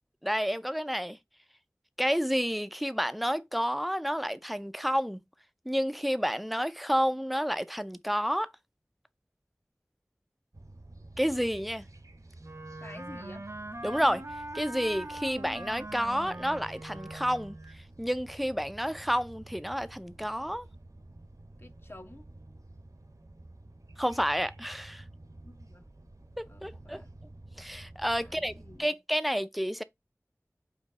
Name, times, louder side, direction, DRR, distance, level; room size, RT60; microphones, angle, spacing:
voice 1, 0.2-1.2 2.0-5.2 5.7-8.5 11.2-11.8 13.8-14.2 14.5-17.6 18.0-20.7 24.0-25.0 26.4-27.0 27.6-28.5 28.8-29.8, equal, ahead, 0.4 m, -30 dB
sound 1, 10.5-28.8, right 2 dB, 80° right, 0.9 m, -51 dB
Wind instrument woodwind instrument, 12.4-17.8, right 1 dB, 50° right, 0.7 m, -42 dB
voice 2, 12.8-13.4 21.6-22.3 25.4-25.9 26.5-27.1 28.2-28.9, left 1 dB, 45° left, 0.9 m, -50 dB
5.1 x 2.7 x 3.7 m
wide cardioid pair, 45°, 6 cm